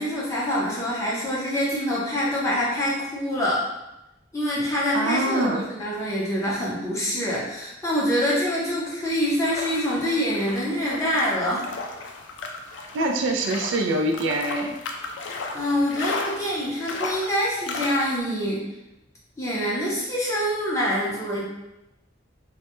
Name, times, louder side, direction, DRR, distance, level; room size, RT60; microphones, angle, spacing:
voice 1, 0.0-3.6 4.3-11.6 12.7-12.8 15.3-18.7 19.4-21.5, equal, 15° left, -6 dB, 0.5 m, -25 dB
voice 2, 4.9-5.6 12.9-14.7, right 1 dB, 75° right, 2 dB, 0.3 m, -24 dB
sound 1, 9.1-18.2, left 3 dB, 65° left, 0.3 m, -35 dB
2.1 x 2.1 x 2.9 m, 0.93 s
head